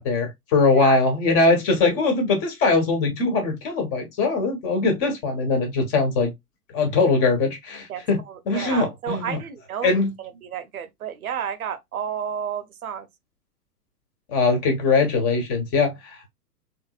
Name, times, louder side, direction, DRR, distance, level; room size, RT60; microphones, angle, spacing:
voice 1, 0.0-6.3 6.7-8.2 8.5-9.4 9.8-10.1 14.3-15.9, left 3 dB, 25° left, 1.4 m, -21 dB
voice 2, 7.9-13.1, right 8 dB, 60° right, 0.8 m, -32 dB
3.6 x 3.2 x 2.4 m
figure-of-eight pair, 120°, 48 cm